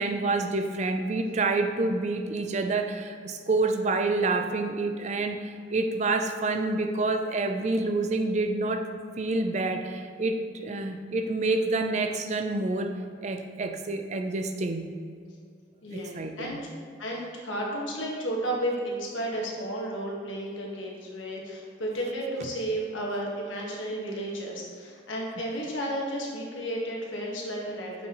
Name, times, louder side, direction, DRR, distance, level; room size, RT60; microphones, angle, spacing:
voice 1, 0.0-13.0 13.2-14.8 15.9-16.6, right 3 dB, 35° right, 6 dB, 0.4 m, -28 dB
voice 2, 15.8-16.6 17.0-28.1, right 1 dB, 80° left, -2 dB, 1.4 m, -33 dB
7.1 x 5.9 x 3.0 m, 2.2 s
head